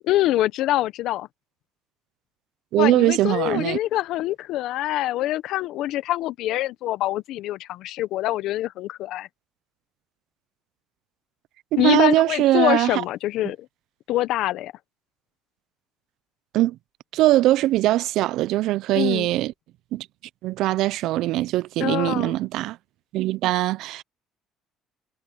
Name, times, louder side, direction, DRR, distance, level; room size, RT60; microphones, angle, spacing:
voice 1, 0.0-1.3 2.8-9.3 11.8-13.7 14.1-14.7 18.9-19.3 21.8-22.3, left 15 dB, 70° left, 1.2 m, -25 dB
voice 2, 2.7-3.8 11.7-13.0 16.5-16.8 17.1-19.5 19.9-20.1 20.4-22.8 23.1-24.0, right 16 dB, 70° right, 0.6 m, -21 dB
supercardioid pair, 70°, 0 cm